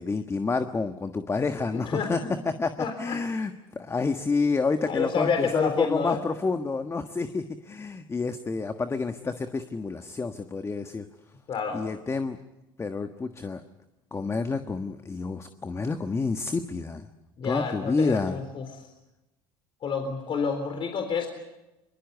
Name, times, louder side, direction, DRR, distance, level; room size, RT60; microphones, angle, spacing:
voice 1, 0.0-2.2 2.4-11.1 11.7-12.4 12.8-13.6 14.1-17.1 17.4-18.4, left 4 dB, 20° left, 8 dB, 1.4 m, -29 dB
voice 2, 1.7-2.3 2.8-3.2 4.8-6.2 11.5-11.8 17.4-18.9 19.8-21.3, left 5 dB, 45° left, 5 dB, 3.9 m, -29 dB
23.0 x 23.0 x 8.4 m, 1.0 s
supercardioid pair, 85°, 12 cm